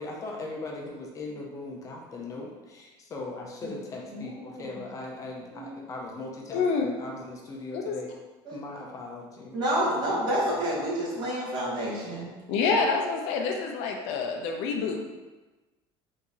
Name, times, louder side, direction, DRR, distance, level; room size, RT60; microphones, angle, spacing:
voice 1, 0.0-8.1 8.5-9.6, left 2 dB, 30° left, -2 dB, 0.7 m, -39 dB
voice 2, 4.1-4.8 5.5-5.8 8.5-8.8 9.5-12.3, equal, 40° right, -5 dB, 1.3 m, -29 dB
voice 3, 6.5-7.0 7.7-7.9 12.5-15.1, left 4 dB, 75° left, 1 dB, 0.7 m, -27 dB
4.1 x 2.8 x 3.7 m, 1.2 s
cardioid pair, 155°, 11 cm